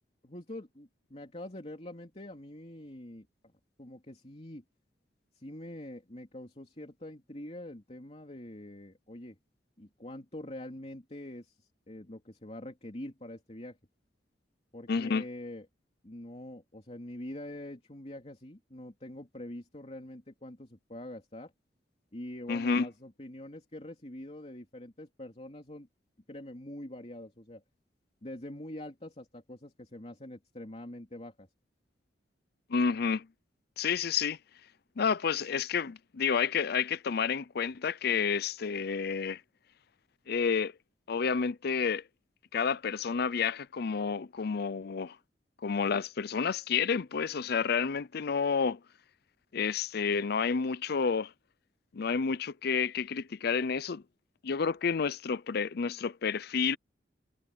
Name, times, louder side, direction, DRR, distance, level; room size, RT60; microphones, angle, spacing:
voice 1, 0.2-3.3 3.8-4.6 5.3-9.4 9.8-13.8 14.7-15.7 16.0-21.5 22.1-25.9 26.3-27.6 28.2-31.5, left 1 dB, 35° left, 3.0 m, -44 dB
voice 2, 14.9-15.2 22.5-22.9 32.7-33.3 33.8-34.4 35.0-39.4 40.3-40.7 41.1-42.0 42.5-45.2 45.6-48.8 49.5-51.3 51.9-54.0 54.4-56.8, left 6 dB, 60° left, 0.5 m, -30 dB
head